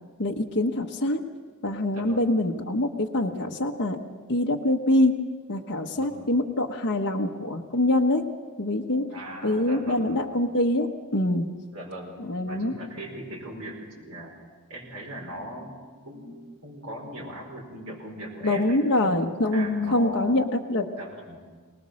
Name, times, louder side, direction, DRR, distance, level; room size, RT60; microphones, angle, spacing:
voice 1, 0.2-1.2 1.6-4.0 4.3-5.2 5.5-8.2 8.6-9.1 9.4-11.5 12.2-12.7 18.4-20.9, left 1 dB, 55° left, 0 dB, 1.2 m, -24 dB
voice 2, 1.9-2.4 5.9-6.3 9.1-10.2 11.7-14.3 14.7-18.8 19.2-20.4 21.0-21.4, right 1 dB, 85° right, -3 dB, 4.9 m, -40 dB
23.5 x 19.5 x 6.5 m, 1.5 s
head